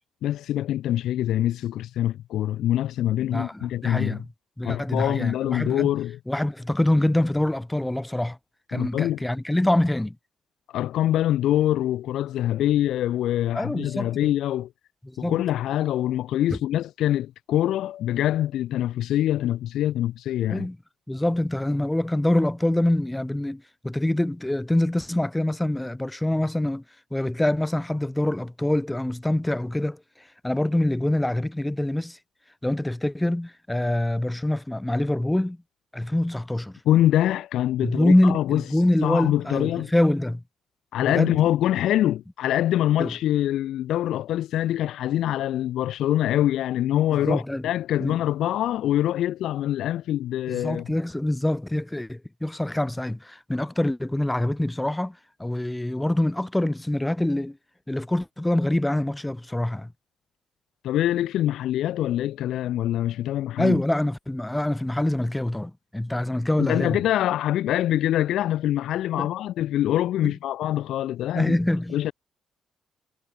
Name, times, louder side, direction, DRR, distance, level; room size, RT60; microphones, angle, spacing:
voice 1, 0.2-4.2 4.6-6.2 8.7-9.2 10.7-14.7 15.2-20.7 36.9-38.6 39.0-39.9 40.9-50.9 60.8-63.8 66.6-71.5 71.9-72.1, left 12 dB, 80° left, 0.3 m, -24 dB
voice 2, 3.3-4.3 4.6-5.9 6.3-8.4 8.7-10.2 13.5-14.3 15.0-15.4 16.5-16.6 20.5-20.8 21.1-26.8 27.1-30.0 30.4-32.2 32.6-35.6 35.9-36.8 37.8-40.4 41.0-41.5 43.0-43.1 47.2-47.7 48.0-48.2 50.5-57.6 57.9-59.9 63.6-67.0 69.2-69.3 70.2-70.3 71.3-72.1, left 1 dB, 10° left, 2.5 m, -25 dB
cardioid pair, 90°, 0 cm